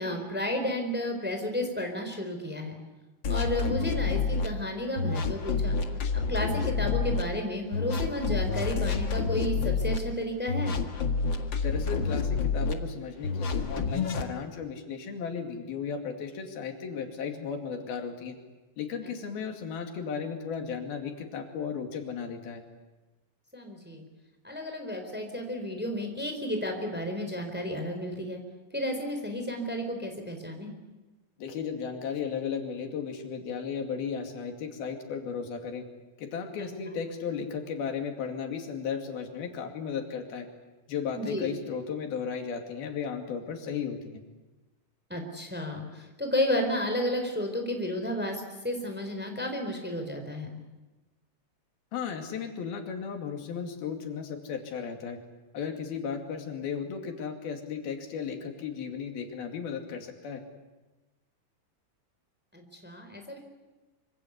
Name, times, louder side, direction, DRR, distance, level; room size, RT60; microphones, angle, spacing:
voice 1, 0.0-2.8 3.3-5.8 6.1-10.8 23.5-24.1 24.4-28.4 28.7-30.7 36.6-36.7 41.1-41.5 45.1-50.6 62.5-63.4, left 1 dB, 5° right, 4 dB, 3.7 m, -32 dB
sound 1, 3.2-4.5 5.0-7.2 7.7-10.0 10.5-12.7 13.2-14.3, left 5 dB, 40° left, 1.8 m, -28 dB
voice 2, 11.6-18.4 18.8-22.6 31.4-35.9 36.2-40.5 40.9-44.2 51.9-55.2 55.5-60.4, left 6 dB, 85° left, 4 dB, 4.3 m, -35 dB
26.0 x 24.5 x 8.3 m, 1.1 s
omnidirectional pair, 4.2 m